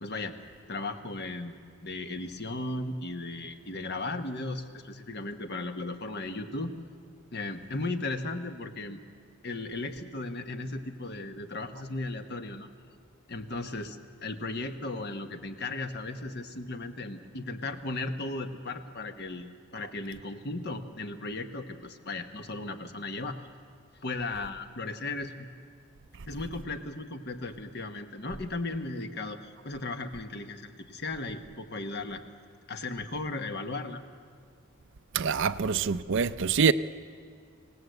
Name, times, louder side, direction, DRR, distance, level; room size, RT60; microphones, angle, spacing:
voice 1, 0.0-0.4 0.7-6.7 7.3-9.0 9.4-12.7 13.3-23.4 24.0-25.5 26.3-32.2 32.7-34.0, left 2 dB, 50° left, 1.3 m, -36 dB
voice 2, 35.1-36.7, right 6 dB, 55° right, 0.5 m, -25 dB
26.0 x 17.5 x 8.0 m
head